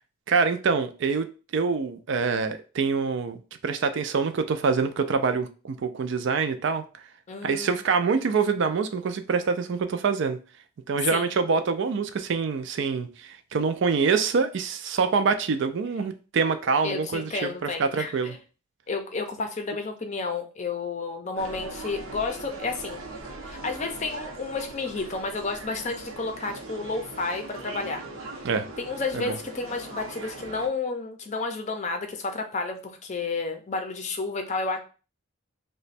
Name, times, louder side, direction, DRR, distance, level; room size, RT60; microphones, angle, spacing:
voice 1, 0.3-1.3 1.5-6.8 7.4-10.4 10.9-18.3 28.4-28.7 29.1-29.4, right 5 dB, 60° right, 0.4 m, -25 dB
voice 2, 7.3-7.8 11.1-11.3 16.8-18.4 18.9-23.0 23.4-28.0 28.8-34.8, left 3 dB, 35° left, 0.5 m, -31 dB
sound 1, 21.4-30.7, right 2 dB, 85° right, 0.8 m, -40 dB
3.0 x 2.2 x 4.1 m
head